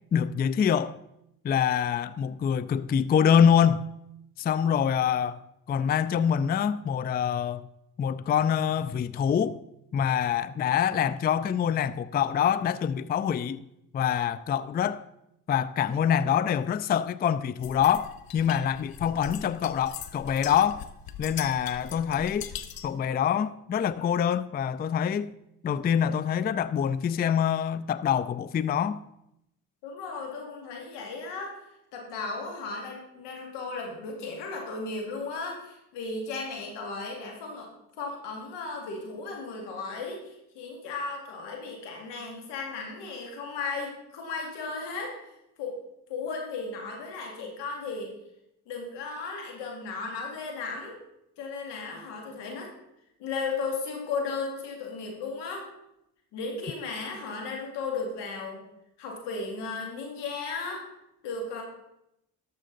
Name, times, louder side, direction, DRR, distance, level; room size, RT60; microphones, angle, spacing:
voice 1, 0.1-1.0 1.4-3.9 4.4-5.4 5.7-7.7 8.0-9.6 9.9-13.6 13.9-15.0 15.5-20.9 21.2-22.5 22.8-25.3 25.6-29.0, left 8 dB, 25° left, 0.3 m, -25 dB
sound 1, 17.6-23.0, left 9 dB, 60° left, 0.8 m, -41 dB
voice 2, 29.8-31.6 31.9-37.7 38.0-45.1 45.6-45.8 46.1-48.1 48.7-51.0 51.4-52.7 53.2-55.7 56.3-58.6 59.0-60.8 61.2-61.6, left 4 dB, 85° left, 2.3 m, -35 dB
12.0 x 6.8 x 3.9 m
supercardioid pair, 55°, 41 cm